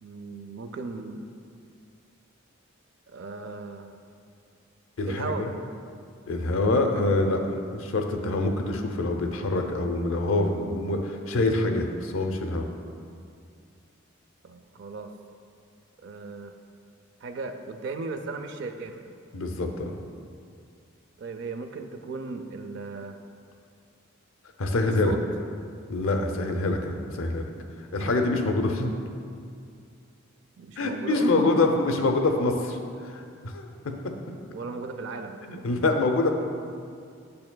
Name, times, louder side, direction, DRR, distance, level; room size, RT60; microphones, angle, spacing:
voice 1, 0.0-1.3 3.1-4.0 5.0-5.5 14.4-15.1 16.0-16.5 17.2-19.1 21.2-23.2 25.0-25.2 27.9-28.1 30.6-31.5 34.5-35.5, right 4 dB, 60° right, 6 dB, 0.4 m, -36 dB
voice 2, 5.0-5.5 6.3-7.4 7.7-12.7 19.3-20.0 24.6-25.1 25.9-27.5 27.9-28.9 30.8-33.9 35.4-36.3, left 2 dB, 80° left, 4 dB, 0.6 m, -25 dB
8.5 x 6.5 x 2.2 m, 2.3 s
head